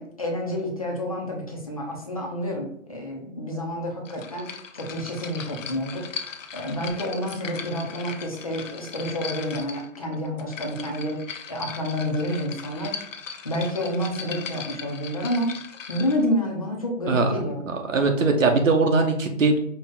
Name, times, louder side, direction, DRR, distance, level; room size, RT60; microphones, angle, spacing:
voice 1, 0.0-11.2 11.5-12.9 13.4-15.5 15.9-17.6, equal, 25° left, -1 dB, 0.6 m, -29 dB
sound 1, 4.1-16.3, left 6 dB, 70° left, 0.7 m, -38 dB
voice 2, 17.9-19.6, right 3 dB, 70° right, 4 dB, 1.0 m, -20 dB
5.3 x 2.3 x 3.8 m, 0.70 s
hypercardioid pair, 175°, 40 cm